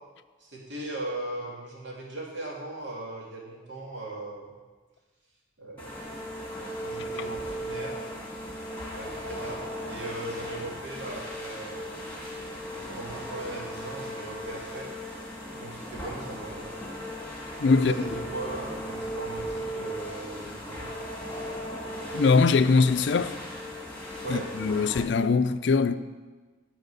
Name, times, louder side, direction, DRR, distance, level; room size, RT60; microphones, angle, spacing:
voice 1, 0.4-4.5 5.6-5.9 6.8-8.1 9.0-12.1 12.7-14.9 15.5-17.0 17.8-20.9 24.2-24.5, right 2 dB, 70° right, 2.6 m, -38 dB
sound 1, 5.8-25.0, equal, 10° left, 1.7 m, -37 dB
voice 2, 17.6-17.9 22.1-23.4 24.3-26.0, left 4 dB, 65° left, 0.4 m, -22 dB
12.0 x 4.6 x 6.9 m
head